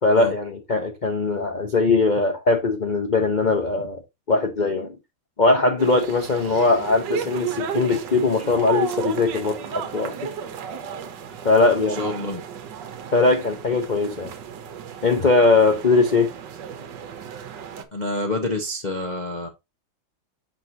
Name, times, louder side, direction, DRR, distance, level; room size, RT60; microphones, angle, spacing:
voice 1, 0.0-4.0 4.3-5.0 5.4-10.3 11.4-12.1 13.1-14.3 15.0-16.3, left 3 dB, 80° left, 0.4 m, -20 dB
sound 1, 5.8-17.8, right 7 dB, 65° right, 1.5 m, -33 dB
voice 2, 12.0-12.4 17.9-19.5, left 2 dB, 35° left, 0.8 m, -27 dB
6.7 x 6.2 x 2.7 m
omnidirectional pair, 2.1 m